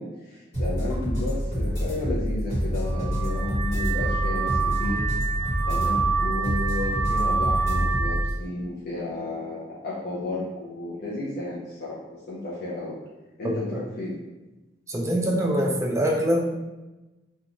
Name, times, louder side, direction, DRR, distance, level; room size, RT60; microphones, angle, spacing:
voice 1, 0.0-5.1 5.6-13.0 13.4-14.2, left 2 dB, 50° left, -8 dB, 0.5 m, -33 dB
sound 1, 0.5-8.3, equal, 35° left, 1.4 m, -27 dB
Car / Alarm, 2.8-8.3, right 5 dB, 35° right, 0.7 m, -28 dB
voice 2, 13.4-13.8 14.9-16.4, equal, 15° right, 0 dB, 0.3 m, -24 dB
2.5 x 2.2 x 2.9 m, 1.1 s
head